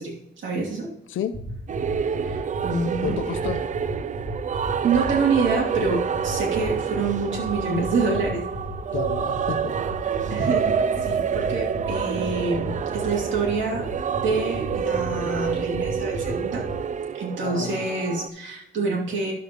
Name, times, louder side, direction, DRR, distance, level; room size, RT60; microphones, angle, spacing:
voice 1, 0.0-0.9 2.2-3.2 4.8-8.4 10.3-10.7 11.0-16.6 17.1-19.3, right 4 dB, 70° right, -2 dB, 2.6 m, -27 dB
voice 2, 1.1-1.4 3.0-3.7 8.9-9.7 17.4-17.8, left 8 dB, 75° left, 9 dB, 0.7 m, -30 dB
sound 1, 1.3-16.7, right 1 dB, 20° right, 2.4 m, -34 dB
sound 2, 1.7-18.3, right 7 dB, 40° right, 0.4 m, -28 dB
11.5 x 6.9 x 3.0 m, 0.88 s
cardioid pair, 95°, 20 cm